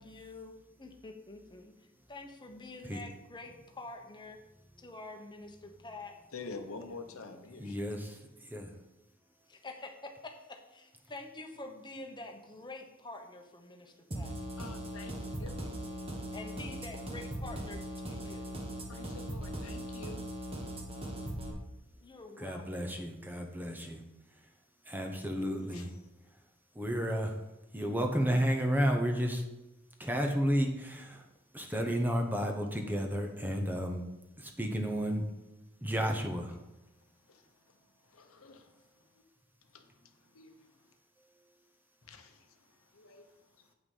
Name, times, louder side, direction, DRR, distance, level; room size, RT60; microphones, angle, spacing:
voice 1, 0.0-4.4 4.8-6.2 9.5-14.4 15.1-17.8 18.1-18.6 22.0-23.1, left 2 dB, 20° left, 3 dB, 1.1 m, -47 dB
voice 2, 6.3-7.9 14.6-15.1 15.4-15.6 18.9-20.2 25.7-25.9 37.3-37.8 38.0-39.2 39.7-40.8 42.0-43.3, left 4 dB, 70° left, 6 dB, 0.9 m, -48 dB
voice 3, 7.6-8.2 8.5-8.7 22.4-24.0 24.9-25.9 26.7-27.3 27.7-29.4 30.0-31.2 31.5-34.0 34.4-35.2 35.8-36.6, equal, 10° right, 3 dB, 0.9 m, -32 dB
sound 1, 14.1-21.5, equal, 25° right, 1.3 m, -39 dB
8.4 x 5.8 x 5.5 m, 0.94 s
head